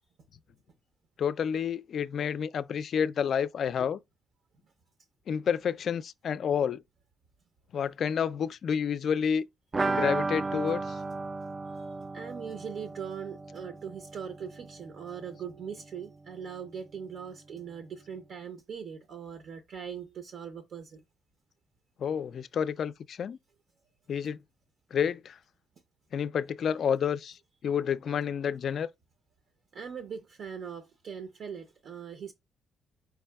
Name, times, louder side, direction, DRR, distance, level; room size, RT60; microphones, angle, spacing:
voice 1, 1.2-4.0 5.3-6.8 7.7-9.5 9.9-10.8 22.0-23.4 24.1-24.4 24.9-25.4 26.1-27.4 27.6-28.9, left 7 dB, 60° left, 0.3 m, -29 dB
sound 1, 9.7-15.3 15.6-15.7 16.0-16.1, right 3 dB, 30° right, 0.3 m, -34 dB
voice 2, 12.1-21.0 29.7-32.3, right 7 dB, 65° right, 0.6 m, -41 dB
4.6 x 4.4 x 2.2 m
cardioid pair, 90°, 0 cm